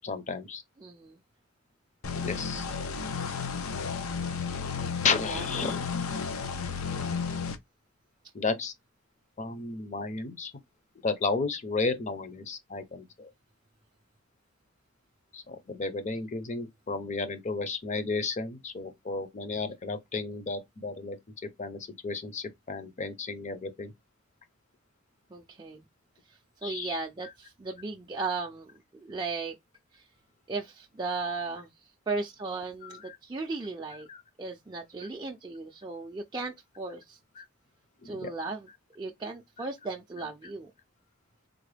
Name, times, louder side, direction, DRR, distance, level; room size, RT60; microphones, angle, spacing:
voice 1, 0.0-0.6 2.2-2.6 5.0-6.1 8.3-8.7 9.4-10.5 11.0-13.3 15.3-21.2 21.6-23.9 26.6-27.3 32.8-33.2 34.1-34.2 35.0-35.1 37.4-37.5 38.0-38.3, left 4 dB, 35° left, 0.6 m, -33 dB
voice 2, 0.8-1.2 5.3-5.4 25.3-25.8 26.3-29.6 29.9-30.1 30.5-31.7 32.1-34.1 34.4-37.2 38.0-38.7 39.0-40.7, right 3 dB, 20° right, 0.4 m, -36 dB
sound 1, 2.0-7.6, left 5 dB, 90° left, 0.6 m, -33 dB
3.7 x 2.1 x 3.2 m
head